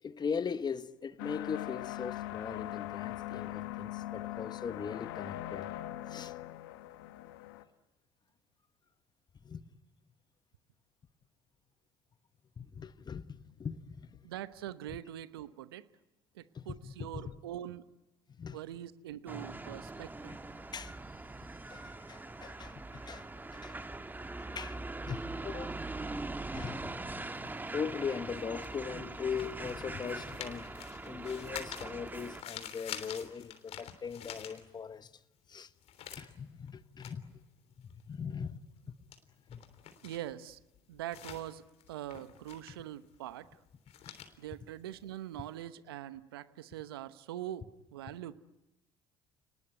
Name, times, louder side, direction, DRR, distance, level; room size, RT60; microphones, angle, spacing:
voice 1, 0.0-5.7 6.1-6.4 9.4-9.6 12.6-14.2 14.9-15.0 16.5-17.3 18.4-18.6 20.3-20.4 20.7-21.0 21.7-23.8 24.5-25.8 26.5-30.7 31.0-35.1 35.5-35.7 36.2-37.4 37.8-38.6 39.5-39.6 44.0-44.3, left 6 dB, 35° left, 1.3 m, -40 dB
sound 1, 1.2-7.6, left 15 dB, 80° left, 1.3 m, -41 dB
voice 2, 14.2-15.8 16.3-17.8 18.5-20.3 40.0-40.6 40.9-41.6 41.9-43.5 44.4-47.6 47.9-48.3, right 12 dB, 85° right, 0.9 m, -43 dB
sound 2, 19.3-32.4, right 2 dB, 15° right, 1.6 m, -42 dB
sound 3, 27.3-35.1 35.4-45.5, left 9 dB, 60° left, 3.4 m, -49 dB
29.5 x 19.5 x 9.4 m
hypercardioid pair, 60°, 12 cm